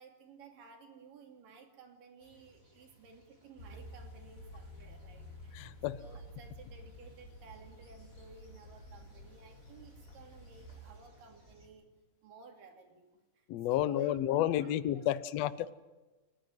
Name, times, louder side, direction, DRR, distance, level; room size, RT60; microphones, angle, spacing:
voice 1, 0.0-11.9 12.2-13.1 13.3-15.2, right 5 dB, 85° right, 3 dB, 4.4 m, -56 dB
sound 1, 2.2-11.7, equal, 25° right, 7.2 m, -64 dB
sound 2, 3.6-11.0, equal, 45° left, 7.7 m, -51 dB
voice 2, 5.5-6.0 13.5-15.7, left 12 dB, 70° left, 15 dB, 1.7 m, -31 dB
29.5 x 11.5 x 9.3 m, 1.2 s
omnidirectional pair, 3.8 m